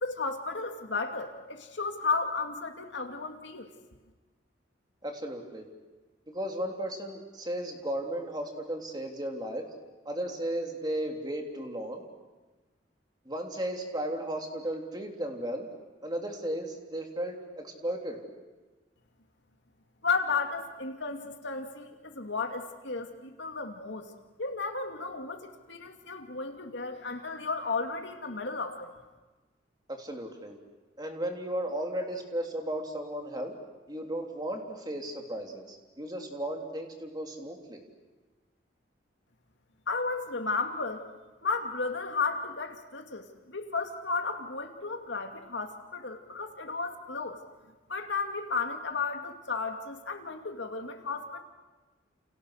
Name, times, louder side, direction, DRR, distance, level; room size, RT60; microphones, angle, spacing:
voice 1, 0.0-3.7 20.0-24.1 24.4-28.9 39.9-41.1 41.4-47.4 47.9-51.4, left 4 dB, 70° left, 5 dB, 2.5 m, -33 dB
voice 2, 5.0-5.6 6.3-9.6 10.0-12.0 13.2-15.7 16.0-18.2 29.9-30.6 31.0-33.5 33.9-37.8, right 1 dB, 20° right, 2 dB, 3.3 m, -35 dB
29.5 x 29.0 x 6.6 m, 1.3 s
head